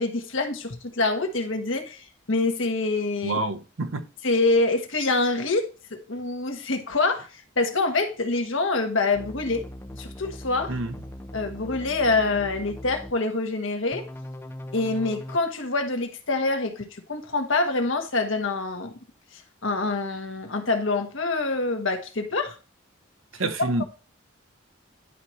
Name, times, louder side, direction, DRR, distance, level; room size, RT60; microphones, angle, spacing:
voice 1, 0.0-3.4 4.2-9.7 9.9-10.8 11.3-14.1 14.7-18.9 19.6-22.5 23.4-23.8, left 3 dB, 70° left, 1.3 m, -26 dB
voice 2, 3.2-4.0 10.7-10.9 23.4-23.8, right 2 dB, 80° right, 0.8 m, -27 dB
sound 1, 9.1-13.1 13.9-15.4, left 1 dB, 10° left, 0.5 m, -40 dB
11.0 x 4.2 x 3.1 m
head